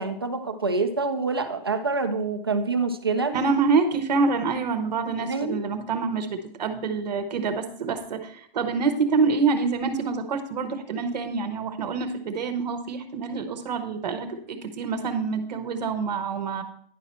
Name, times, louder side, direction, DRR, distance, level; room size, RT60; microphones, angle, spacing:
voice 1, 0.0-3.4 5.3-5.6, right 3 dB, 25° right, 7 dB, 0.4 m, -26 dB
voice 2, 3.3-16.6, right 4 dB, 45° right, 8 dB, 1.0 m, -26 dB
10.0 x 5.7 x 4.3 m, 0.63 s
hypercardioid pair, 180°, 30 cm